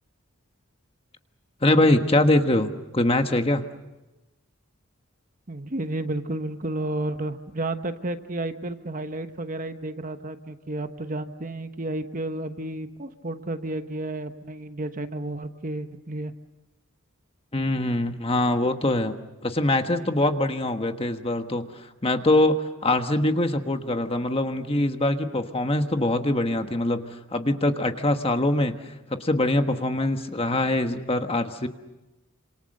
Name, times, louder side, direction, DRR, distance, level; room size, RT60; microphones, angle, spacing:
voice 1, 1.6-3.7 17.5-19.2 19.4-31.7, left 1 dB, 25° left, 7 dB, 1.3 m, -23 dB
voice 2, 5.5-16.3, right 2 dB, 35° right, 8 dB, 1.2 m, -32 dB
28.5 x 27.0 x 6.6 m, 1.0 s
head